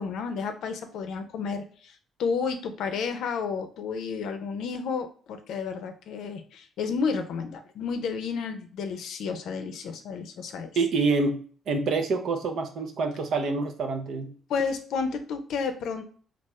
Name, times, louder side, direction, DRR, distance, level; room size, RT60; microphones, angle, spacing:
voice 1, 0.0-10.7 14.5-16.0, left 5 dB, 80° left, 7 dB, 0.5 m, -31 dB
voice 2, 10.8-14.3, right 3 dB, 70° right, 5 dB, 0.6 m, -27 dB
3.5 x 2.4 x 3.1 m, 0.43 s
cardioid pair, 90°, 0 cm